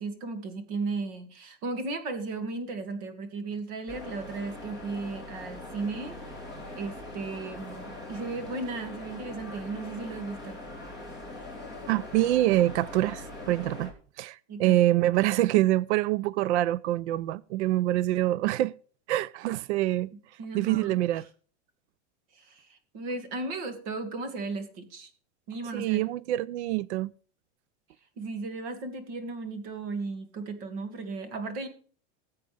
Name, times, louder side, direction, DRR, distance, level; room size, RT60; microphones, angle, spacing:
voice 1, 0.0-6.2 6.7-10.6 14.5-14.8 20.4-21.2 22.3-25.1 25.5-26.0 28.2-31.7, right 3 dB, 40° right, 2.1 m, -35 dB
sound 1, 3.9-13.9, left 2 dB, 10° right, 2.8 m, -42 dB
voice 2, 11.9-13.9 14.2-18.7 19.1-20.1 20.5-21.3 25.7-27.1, right 15 dB, 70° right, 0.5 m, -25 dB
19.5 x 8.1 x 3.4 m
supercardioid pair, 175°, 35 cm